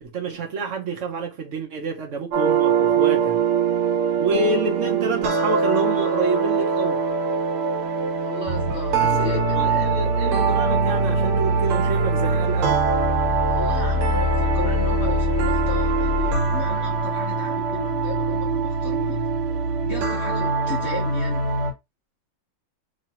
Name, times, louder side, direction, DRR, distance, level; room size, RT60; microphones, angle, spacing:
voice 1, 0.0-3.4 4.2-7.0 9.0-12.9, right 3 dB, 50° right, 0.9 m, -28 dB
sound 1, 2.3-21.7, right 4 dB, 90° right, 1.9 m, -22 dB
voice 2, 8.2-9.9 13.5-19.3 19.8-21.5, left 4 dB, 60° left, 0.6 m, -35 dB
3.4 x 3.1 x 2.8 m
omnidirectional pair, 2.3 m